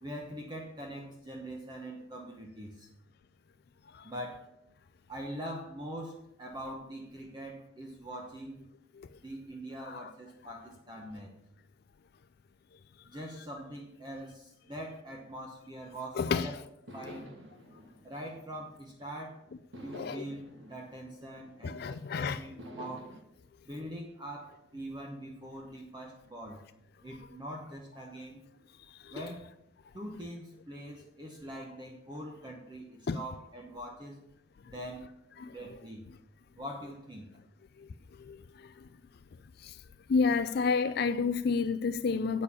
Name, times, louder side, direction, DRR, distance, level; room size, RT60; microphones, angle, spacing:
voice 1, 0.0-2.9 4.0-4.5 5.1-8.6 9.2-11.3 13.1-16.5 16.9-17.3 18.0-19.4 19.7-23.1 23.6-26.6 27.0-28.4 29.1-29.5 29.9-34.2 34.6-35.1 35.4-36.1 36.6-37.3, right 1 dB, 20° right, 1.0 m, -43 dB
voice 2, 16.2-16.5 19.9-20.3 21.6-22.4 29.0-29.2 33.1-33.2 35.4-35.6 37.8-37.9 38.2-38.7 39.6-39.8 40.1-42.4, left 5 dB, 50° left, 0.4 m, -30 dB
sound 1, 16.9-19.1 19.7-22.0 22.6-23.2, equal, 65° right, 1.6 m, -50 dB
8.4 x 6.8 x 7.2 m
head